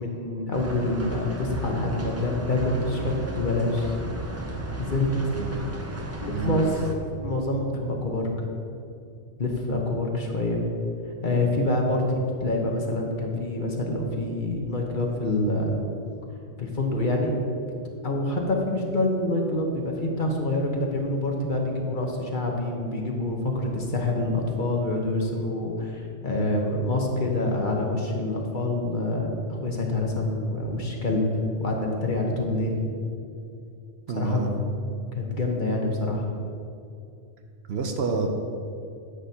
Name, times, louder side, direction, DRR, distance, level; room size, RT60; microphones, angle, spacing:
voice 1, 0.0-3.9 4.8-5.1 6.2-6.7 7.2-8.3 9.4-10.6 11.2-12.0 12.4-15.7 16.6-17.3 18.0-31.2 31.6-32.8 34.1-34.4 35.1-36.3, left 2 dB, 45° left, 0 dB, 1.1 m, -26 dB
sound 1, 0.5-6.9, right 1 dB, 20° right, 0.5 m, -34 dB
voice 2, 6.3-6.7 34.1-34.5 37.7-38.3, right 5 dB, 65° right, 4 dB, 0.9 m, -28 dB
9.7 x 8.9 x 2.8 m, 2.5 s
omnidirectional pair, 1.2 m